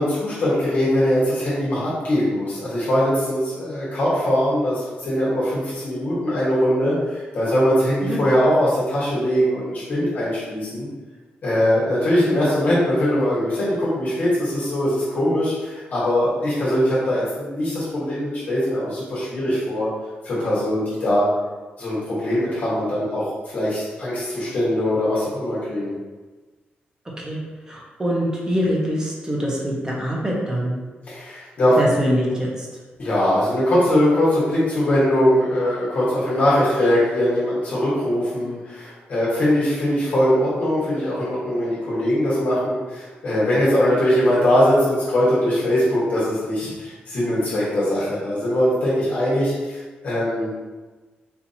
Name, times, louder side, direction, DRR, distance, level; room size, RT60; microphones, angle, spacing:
voice 1, 0.0-10.9 11.4-19.9 20.2-21.3 21.8-25.9 31.1-31.8 33.0-50.5, equal, 55° left, -9 dB, 1.4 m, -21 dB
voice 2, 27.7-30.8 31.8-32.7, equal, 20° right, -3 dB, 0.9 m, -24 dB
4.4 x 2.6 x 2.7 m, 1.3 s
wide cardioid pair, 140°, 4 cm